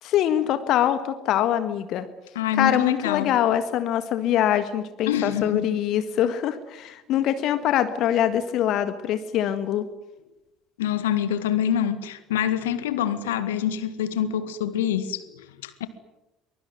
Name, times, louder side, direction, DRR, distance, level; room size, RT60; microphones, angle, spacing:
voice 1, 0.0-2.1 2.5-9.8, left 11 dB, 50° left, 1.6 m, -23 dB
voice 2, 2.4-3.3 5.1-5.6 10.8-15.9, left 9 dB, 70° left, 1.8 m, -26 dB
23.5 x 23.0 x 9.5 m
figure-of-eight pair, 60°, 0 cm